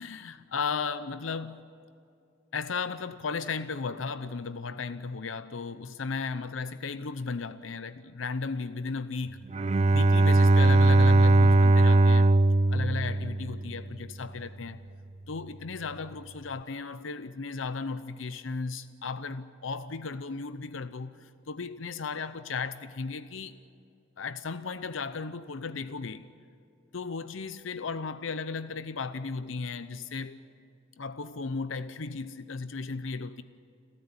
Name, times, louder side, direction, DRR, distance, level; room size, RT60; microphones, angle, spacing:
voice 1, 0.0-1.7 2.5-9.4 9.8-12.3 12.7-14.8 15.3-23.6 24.2-26.3 26.9-30.4 31.0-33.4, left 4 dB, 85° left, 12 dB, 0.7 m, -35 dB
Bowed string instrument, 9.5-13.8, right 2 dB, 35° right, 0.4 m, -20 dB
29.5 x 13.0 x 8.9 m, 2.4 s
head